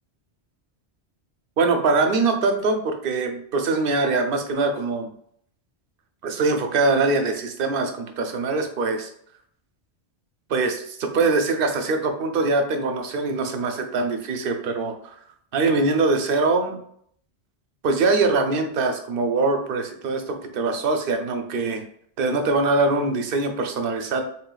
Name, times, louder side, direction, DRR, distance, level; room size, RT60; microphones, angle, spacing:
voice 1, 1.6-5.1 6.2-9.1 10.5-15.1 15.5-16.8 17.8-21.8 22.2-24.2, right 3 dB, 60° right, 6 dB, 0.7 m, -23 dB
3.8 x 3.7 x 2.3 m, 0.65 s
omnidirectional pair, 1.1 m